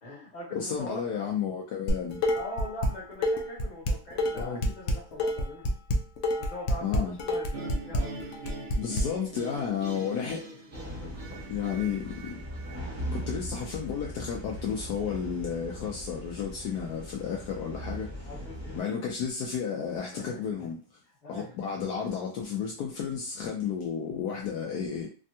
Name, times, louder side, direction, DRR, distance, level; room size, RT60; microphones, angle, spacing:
voice 1, 0.0-1.3 2.3-5.8 6.4-8.5 10.0-10.1 10.8-11.4 12.8-13.0 18.2-19.0 20.1-20.4 21.2-21.6, left 1 dB, 30° left, 1.0 m, -42 dB
voice 2, 0.5-2.2 4.4-4.7 6.8-7.1 8.8-10.4 11.5-12.4 13.1-18.3 18.7-20.8 21.3-25.1, left 7 dB, 70° left, 1.0 m, -32 dB
Dishes pots and pans, 1.9-2.9 3.2-9.0, left 1 dB, 90° left, 0.6 m, -27 dB
sound 1, 7.5-14.6, right 2 dB, 60° right, 0.7 m, -43 dB
sound 2, 10.7-18.8, equal, 10° right, 0.7 m, -39 dB
3.4 x 2.2 x 2.7 m
omnidirectional pair, 1.9 m